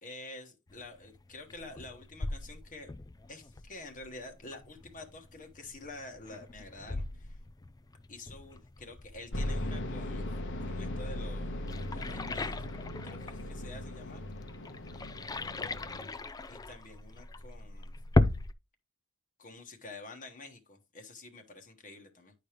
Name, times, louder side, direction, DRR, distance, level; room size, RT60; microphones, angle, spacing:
voice 1, 0.0-2.9 3.3-7.4 8.1-10.3 10.6-12.5 13.0-14.2 16.5-17.9 19.4-22.3, left 2 dB, 35° left, 1.2 m, -48 dB
sound 1, 0.7-18.5, left 2 dB, 15° left, 0.4 m, -37 dB
sound 2, 9.3-16.1, left 1 dB, 55° left, 1.1 m, -38 dB
9.9 x 5.0 x 3.0 m
head